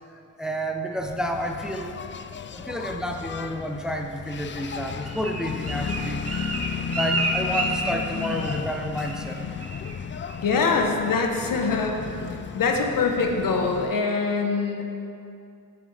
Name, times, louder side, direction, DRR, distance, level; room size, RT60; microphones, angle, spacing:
voice 1, 0.1-1.9 2.5-6.4 6.9-9.4, equal, ahead, 3 dB, 0.7 m, -30 dB
Engine, 1.0-14.0, left 6 dB, 35° left, 0.4 m, -34 dB
Bird, 4.6-8.7 9.0-9.3 9.6-10.0 10.3-10.7 11.1-11.2, right 2 dB, 45° right, 1.4 m, -31 dB
voice 2, 10.4-12.0 12.5-14.8, left 4 dB, 70° left, 2 dB, 1.1 m, -23 dB
10.0 x 7.5 x 3.4 m, 2.4 s
cardioid pair, 75°, 34 cm